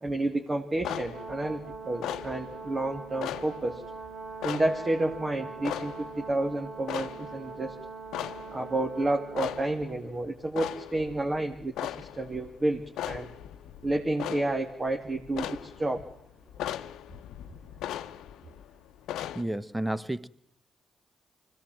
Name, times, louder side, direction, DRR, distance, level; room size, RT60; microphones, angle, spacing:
voice 1, 0.0-3.8 4.4-7.8 8.5-13.3 13.8-16.1, right 2 dB, 35° right, 2.4 m, -30 dB
sound 1, 0.8-19.4, left 11 dB, 80° left, 0.8 m, -39 dB
Brass instrument, 0.9-9.8, right 4 dB, 55° right, 5.2 m, -42 dB
voice 2, 19.3-20.3, right 1 dB, 10° right, 1.1 m, -31 dB
24.5 x 17.5 x 7.7 m
hypercardioid pair, 45°, 0 cm